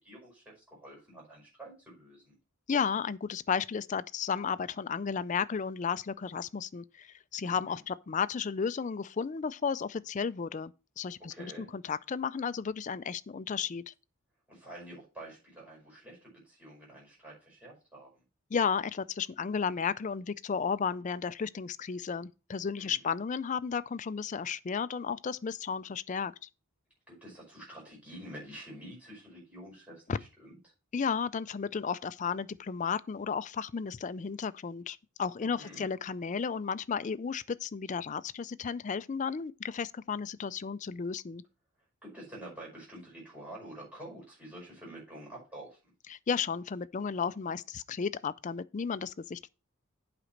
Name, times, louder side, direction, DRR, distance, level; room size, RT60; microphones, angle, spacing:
voice 1, 0.0-2.3 7.4-7.8 11.2-11.7 14.5-18.2 22.8-23.0 27.1-30.6 35.4-35.9 42.0-45.9, right 1 dB, 5° right, 5.2 m, -48 dB
voice 2, 2.7-13.9 18.5-26.5 30.1-30.2 30.9-41.4 46.1-49.5, left 6 dB, 35° left, 0.3 m, -33 dB
8.1 x 5.1 x 5.8 m
head